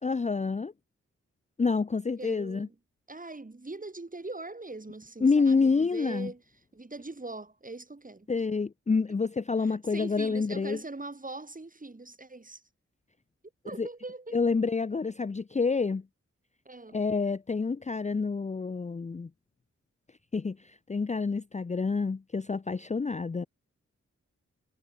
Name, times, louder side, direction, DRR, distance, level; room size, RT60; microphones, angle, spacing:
voice 1, 0.0-0.7 1.6-2.7 5.2-6.3 8.3-10.8 13.8-13.9 14.3-16.0 16.9-19.3 20.3-23.5, left 4 dB, 25° left, 0.6 m, -28 dB
voice 2, 2.2-2.7 3.1-6.4 6.7-8.3 9.6-12.6 13.6-14.4 16.6-17.0, right 2 dB, 30° right, 3.0 m, -41 dB
cardioid pair, 45°, 29 cm